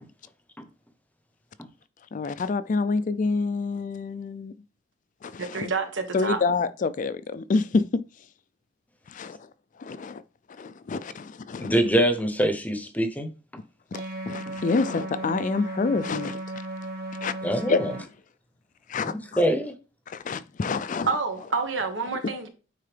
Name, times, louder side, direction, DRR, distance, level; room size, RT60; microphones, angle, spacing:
voice 1, 2.1-4.5 5.2-5.6 6.1-8.0 9.1-9.4 9.8-10.2 10.6-11.7 14.3-16.4 17.2-17.3 17.7-18.0 18.9-19.4 20.1-21.1, left 4 dB, 45° left, 0.4 m, -27 dB
voice 2, 5.4-6.4 21.1-22.5, right 4 dB, 75° right, 1.3 m, -28 dB
voice 3, 11.6-13.3 14.5-14.6 17.4-17.9 18.9-19.7, right 1 dB, 10° left, 0.9 m, -24 dB
sound 1, 13.9-18.0, right 1 dB, 55° right, 1.3 m, -35 dB
9.3 x 3.8 x 3.3 m
head